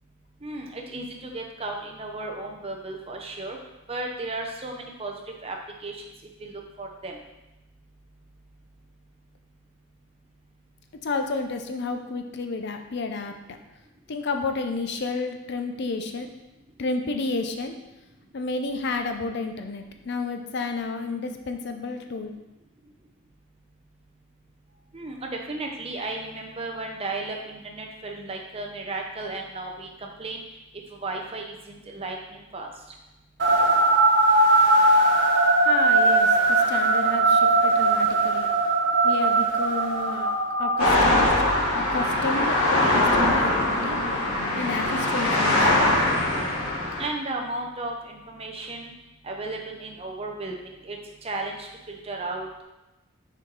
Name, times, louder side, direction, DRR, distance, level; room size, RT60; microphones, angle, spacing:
voice 1, 0.4-3.6 3.9-5.1 5.4-5.5 5.8-6.0 6.4-7.2 24.9-30.4 30.9-32.7 47.0-48.9 49.2-52.6, right 2 dB, 25° right, 1 dB, 0.7 m, -34 dB
voice 2, 11.0-13.3 14.1-16.3 16.8-17.8 18.3-22.4 35.6-38.5 39.0-40.3 40.6-44.0 44.5-45.9, left 3 dB, 50° left, 6 dB, 0.5 m, -31 dB
sound 1, 33.4-42.9, right 2 dB, 55° right, 0.9 m, -21 dB
sound 2, 40.8-47.1, left 1 dB, 90° left, 1.5 m, -22 dB
5.9 x 4.5 x 3.9 m, 0.98 s
head